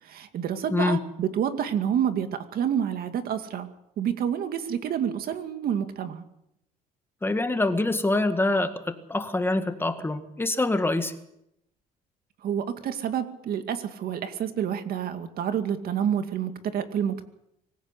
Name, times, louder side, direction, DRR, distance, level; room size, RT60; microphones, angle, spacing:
voice 1, 0.0-3.7 4.0-6.2 12.4-17.2, right 8 dB, 60° right, 8 dB, 2.3 m, -28 dB
voice 2, 7.2-11.1, left 2 dB, 15° left, 8 dB, 2.0 m, -25 dB
24.5 x 15.5 x 8.3 m, 0.80 s
cardioid pair, 110°, 17 cm